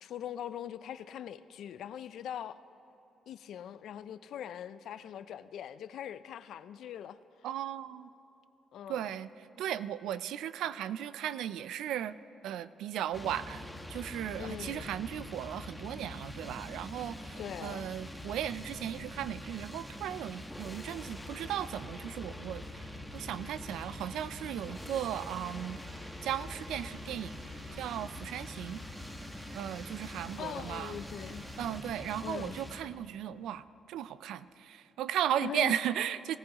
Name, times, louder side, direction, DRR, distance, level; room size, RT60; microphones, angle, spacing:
voice 1, 0.0-2.6 3.3-7.5 8.7-9.2 14.4-14.9 17.4-17.9 30.4-31.4 32.2-32.6 35.4-35.8, left 10 dB, 75° left, 0.4 m, -42 dB
voice 2, 7.4-8.1 8.9-9.3 9.6-12.2 12.4-22.9 23.1-25.8 26.2-27.3 27.8-28.8 29.5-31.0 31.6-36.4, right 10 dB, 85° right, 0.3 m, -36 dB
sound 1, 13.1-32.8, left 1 dB, 5° left, 1.1 m, -44 dB
sound 2, 23.1-31.8, right 2 dB, 40° right, 1.3 m, -55 dB
18.0 x 14.5 x 2.9 m
cardioid pair, 90°, 0 cm